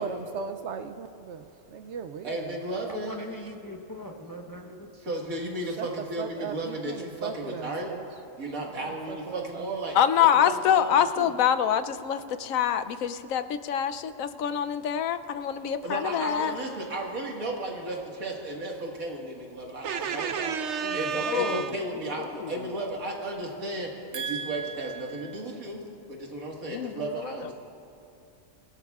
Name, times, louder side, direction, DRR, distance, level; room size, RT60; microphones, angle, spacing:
voice 1, 0.0-2.6 5.6-8.0 8.8-9.7 19.8-21.7 24.1-25.4, right 6 dB, 65° right, 9 dB, 0.8 m, -35 dB
voice 2, 2.2-3.2 5.0-7.9 8.4-11.4 15.8-20.6 20.9-25.8 26.1-27.5, right 2 dB, 85° right, -1 dB, 2.2 m, -34 dB
voice 3, 2.9-4.9, equal, 20° left, 1 dB, 0.8 m, -41 dB
voice 4, 9.9-16.5 20.8-21.0 21.3-21.7 22.4-22.5 26.7-27.5, left 9 dB, 80° left, 10 dB, 1.0 m, -25 dB
26.0 x 17.0 x 2.4 m, 2.6 s
omnidirectional pair, 1.4 m